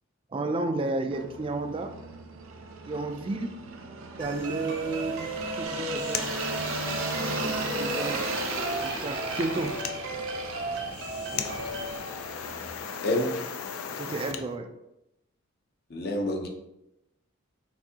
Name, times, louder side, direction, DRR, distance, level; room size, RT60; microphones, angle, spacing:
voice 1, 0.3-1.9 2.9-3.5 4.2-5.3 5.6-6.3 7.4-8.3 8.8-9.8 14.0-14.7, right 3 dB, 25° right, 7 dB, 0.3 m, -32 dB
sound 1, 1.1-12.7, right 4 dB, 80° right, 0.5 m, -37 dB
sound 2, 4.2-12.0, right 1 dB, 60° right, 0.8 m, -35 dB
sound 3, 5.6-14.4, left 6 dB, 85° left, 0.4 m, -37 dB
voice 2, 13.0-13.3 15.9-16.5, left 1 dB, 50° left, 2 dB, 0.7 m, -28 dB
5.9 x 2.7 x 2.8 m, 0.89 s
head